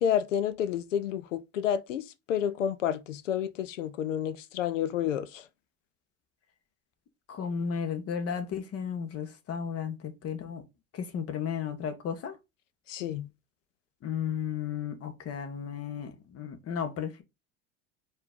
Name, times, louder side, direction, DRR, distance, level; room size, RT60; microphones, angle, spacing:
voice 1, 0.0-5.4 12.9-13.3, left 9 dB, 85° left, 0.6 m, -30 dB
voice 2, 7.3-10.6 10.9-12.3 14.0-17.2, left 7 dB, 40° left, 1.2 m, -34 dB
4.3 x 2.7 x 3.6 m
hypercardioid pair, 85°, 37 cm